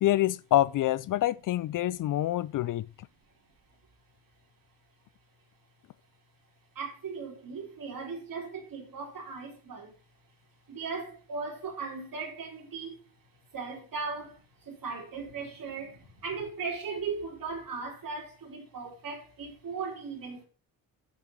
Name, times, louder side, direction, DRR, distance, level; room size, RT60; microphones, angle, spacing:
voice 1, 0.0-2.8, left 14 dB, 50° left, 0.5 m, -26 dB
voice 2, 6.8-9.9 10.7-13.0 13.5-20.4, right 4 dB, 55° right, 4.0 m, -38 dB
8.2 x 6.3 x 4.7 m
hypercardioid pair, 55°, 41 cm